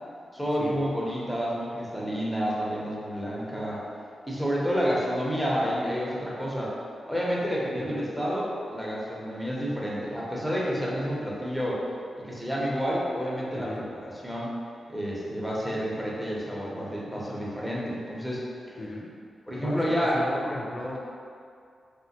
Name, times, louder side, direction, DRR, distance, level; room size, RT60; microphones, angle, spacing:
voice 1, 0.3-3.8 4.3-6.7 7.1-11.8 12.2-14.5 14.9-18.4 19.5-20.2, equal, ahead, -6 dB, 0.7 m, -29 dB
voice 2, 13.5-13.9 18.8-19.1 19.6-21.0, left 1 dB, 50° left, -2 dB, 0.4 m, -36 dB
3.2 x 2.1 x 2.7 m, 2.3 s
cardioid pair, 65°, 0 cm